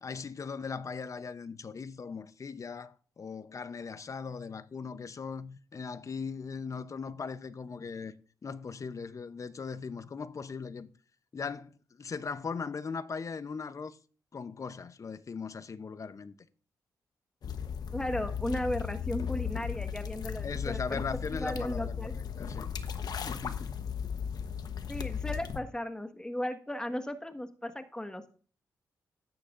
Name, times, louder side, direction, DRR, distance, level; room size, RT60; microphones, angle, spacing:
voice 1, 0.0-8.1 8.4-10.9 11.3-14.0 14.3-16.4 20.4-22.7 23.2-23.9, left 5 dB, 45° left, 0.8 m, -39 dB
sound 1, 17.4-25.6, left 7 dB, 65° left, 1.1 m, -36 dB
voice 2, 17.9-21.0 21.3-22.2 24.9-28.3, left 1 dB, 10° left, 1.5 m, -36 dB
13.5 x 9.9 x 2.6 m
supercardioid pair, 55°, 7 cm